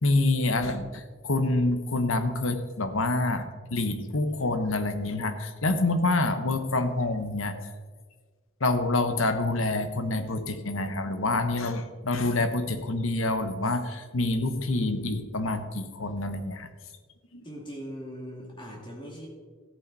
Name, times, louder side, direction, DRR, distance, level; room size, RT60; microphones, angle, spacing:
voice 1, 0.0-7.5 8.6-16.7 17.3-17.4, left 2 dB, 75° left, 9 dB, 1.0 m, -27 dB
voice 2, 17.4-19.3, equal, 20° left, -1 dB, 2.3 m, -40 dB
14.5 x 8.6 x 4.1 m, 1.5 s
head